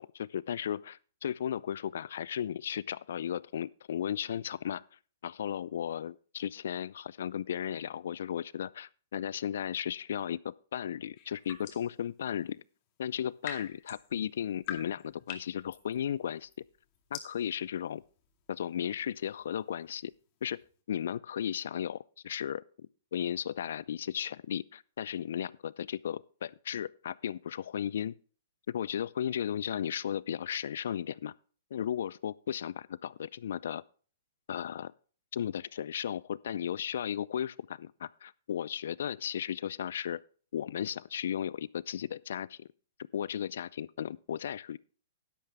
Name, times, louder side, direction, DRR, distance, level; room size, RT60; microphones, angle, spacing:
voice 1, 0.0-4.8 5.2-12.6 13.0-16.5 17.1-18.0 18.5-20.1 20.4-20.6 20.9-22.6 23.1-28.1 28.7-31.3 31.7-33.8 34.5-34.9 35.3-40.2 40.5-42.7 43.1-44.8, left 9 dB, 65° left, 0.4 m, -35 dB
sound 1, 11.2-12.0 13.0-20.8, left 10 dB, 40° left, 2.4 m, -47 dB
11.5 x 11.5 x 3.5 m
hypercardioid pair, 115°, 0 cm